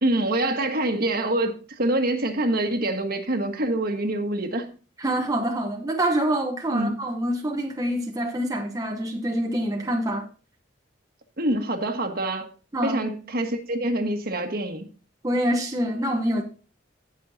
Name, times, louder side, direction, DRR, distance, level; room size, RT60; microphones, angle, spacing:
voice 1, 0.0-4.7 6.7-7.0 11.4-12.5 12.8-14.9, right 1 dB, 50° right, 1.4 m, -25 dB
voice 2, 5.0-10.3 12.7-13.0 15.2-16.4, right 1 dB, 20° right, 0.9 m, -26 dB
18.0 x 6.5 x 2.7 m
head